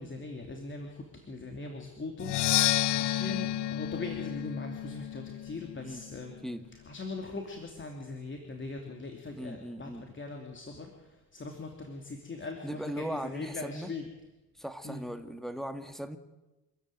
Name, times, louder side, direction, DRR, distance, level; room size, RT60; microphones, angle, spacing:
voice 1, 0.0-6.4 6.9-14.1 14.8-15.0, left 3 dB, 30° left, 3 dB, 2.9 m, -41 dB
Percussion, 2.2-6.0, left 14 dB, 90° left, 1.0 m, -30 dB
voice 2, 9.3-10.1 12.6-13.9 14.5-16.2, equal, ahead, 9 dB, 1.8 m, -38 dB
26.5 x 14.0 x 9.2 m, 1.1 s
cardioid pair, 115°, 39 cm